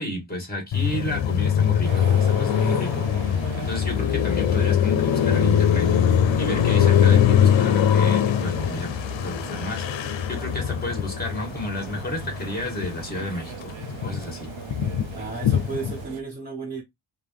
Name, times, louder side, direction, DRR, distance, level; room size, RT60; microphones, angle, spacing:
voice 1, 0.0-3.1 3.6-5.9 6.4-9.9 10.3-14.5, left 1 dB, 20° left, 2.1 m, -32 dB
Car passing by, 0.7-13.2 13.5-16.0, left 9 dB, 75° left, 0.6 m, -22 dB
sound 1, 1.8-16.2, right 6 dB, 80° right, 0.8 m, -39 dB
voice 2, 15.1-16.8, right 4 dB, 15° right, 1.1 m, -33 dB
4.9 x 2.2 x 3.4 m
wide cardioid pair, 120°, 46 cm